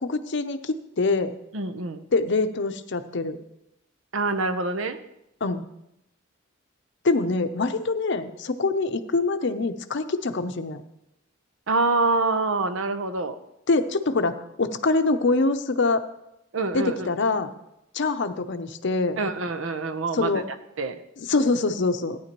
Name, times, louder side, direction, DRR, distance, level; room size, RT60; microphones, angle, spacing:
voice 1, 0.0-1.3 2.1-3.4 5.4-5.6 7.0-10.8 13.7-16.0 16.7-17.5 17.9-19.2 20.1-20.5 21.2-22.2, left 3 dB, 60° left, 10 dB, 0.6 m, -24 dB
voice 2, 1.5-2.0 4.1-5.0 11.7-13.4 16.5-17.0 19.2-20.3 20.8-21.0, right 3 dB, 80° right, 10 dB, 0.7 m, -25 dB
14.5 x 9.5 x 3.0 m, 0.84 s
head